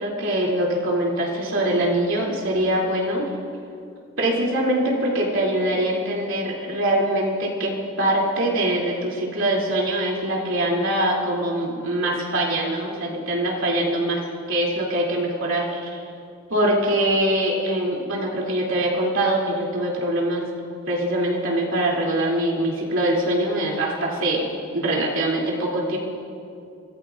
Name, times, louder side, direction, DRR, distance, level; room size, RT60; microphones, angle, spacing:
voice 1, 0.0-3.3 4.2-16.0 16.5-20.5 20.9-26.0, right 1 dB, 70° right, -3 dB, 2.9 m, -23 dB
26.0 x 16.5 x 2.5 m, 2.5 s
head